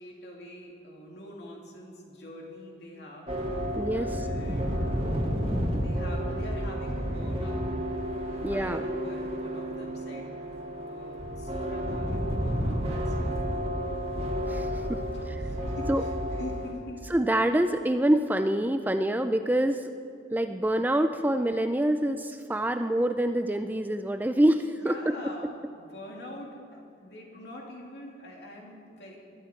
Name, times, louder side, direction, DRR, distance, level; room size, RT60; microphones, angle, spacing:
voice 1, 0.0-7.7 8.2-10.3 10.7-14.0 15.1-17.0 24.8-29.2, left 1 dB, 65° left, -1 dB, 2.8 m, -45 dB
sound 1, 3.3-16.7, equal, 30° right, 1.9 m, -31 dB
voice 2, 3.8-4.3 8.4-8.8 14.5-15.0 15.3-15.4 15.9-16.0 17.1-19.8 20.3-25.1, right 1 dB, 10° right, 8 dB, 0.4 m, -26 dB
21.0 x 13.0 x 4.5 m, 2.5 s
head